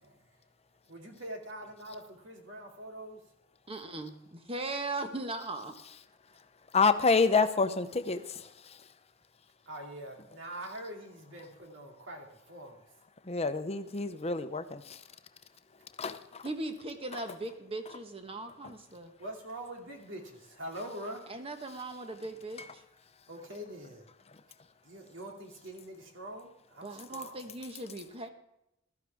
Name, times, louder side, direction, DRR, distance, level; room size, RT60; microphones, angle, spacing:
voice 1, 0.9-3.2 9.7-12.8 19.2-21.2 23.3-24.1 24.8-27.4, right 1 dB, 70° right, 1 dB, 2.7 m, -44 dB
voice 2, 3.7-5.7 16.4-19.1 21.3-22.8 26.8-28.3, right 2 dB, 30° right, 6 dB, 1.3 m, -39 dB
voice 3, 6.7-8.8 13.2-14.8 16.0-16.5 18.6-18.7 22.6-22.7, left 4 dB, 30° left, 9 dB, 0.8 m, -28 dB
15.5 x 13.0 x 3.6 m, 0.85 s
head